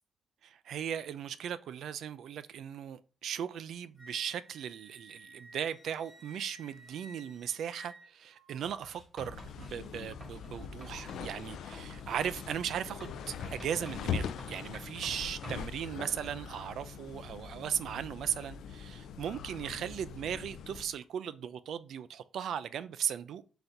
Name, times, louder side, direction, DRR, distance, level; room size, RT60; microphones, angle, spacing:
voice 1, 0.4-23.4, right 9 dB, 75° right, 0.3 m, -37 dB
Wind instrument woodwind instrument, 4.0-8.6, right 1 dB, 55° right, 2.4 m, -54 dB
Writing, 8.6-11.3 11.7-14.1 14.4-15.8, right 1 dB, 35° right, 1.7 m, -50 dB
sound 1, 9.2-20.9, left 7 dB, 85° left, 0.3 m, -42 dB
3.9 x 2.6 x 4.4 m
cardioid pair, 150°, 0 cm